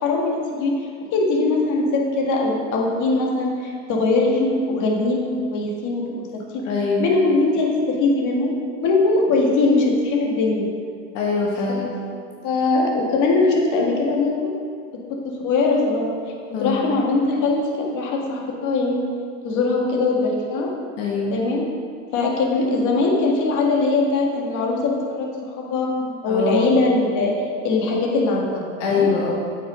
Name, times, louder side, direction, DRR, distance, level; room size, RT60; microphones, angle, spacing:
voice 1, 0.0-6.3 6.5-6.7 7.0-10.7 11.7-11.9 12.4-14.5 14.9-16.2 16.6-19.1 19.4-20.7 21.3-21.6 22.1-25.9 26.2-29.1, left 3 dB, 50° left, -1 dB, 2.0 m, -21 dB
voice 2, 6.7-7.1 11.1-11.9 16.5-16.8 21.0-21.3 26.3-26.7 28.8-29.3, left 4 dB, 75° left, -3 dB, 1.4 m, -23 dB
8.2 x 6.4 x 5.0 m, 2.3 s
hypercardioid pair, 90°, 38 cm